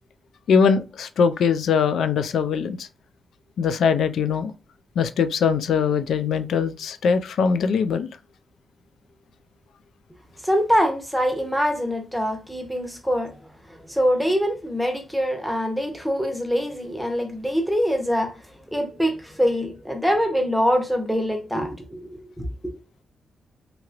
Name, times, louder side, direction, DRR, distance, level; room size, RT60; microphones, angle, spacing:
voice 1, 0.5-2.9 3.6-4.5 5.0-8.1, left 6 dB, 75° left, 0.4 m, -21 dB
voice 2, 10.4-13.4 13.7-18.4 18.7-22.7, equal, ahead, 0.8 m, -24 dB
2.9 x 2.9 x 2.4 m
wide cardioid pair, 140°, 0 cm